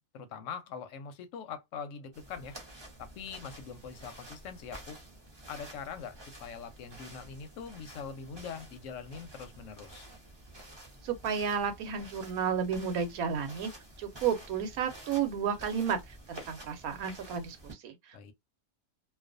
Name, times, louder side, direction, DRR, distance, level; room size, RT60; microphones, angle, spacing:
voice 1, 0.0-2.6 3.0-5.0 5.5-10.1 18.1-18.3, left 6 dB, 70° left, 0.8 m, -43 dB
sound 1, 2.1-17.7, right 1 dB, 25° right, 0.6 m, -50 dB
voice 2, 11.0-13.7 14.0-18.3, right 7 dB, 75° right, 1.1 m, -32 dB
2.4 x 2.3 x 2.4 m
omnidirectional pair, 1.5 m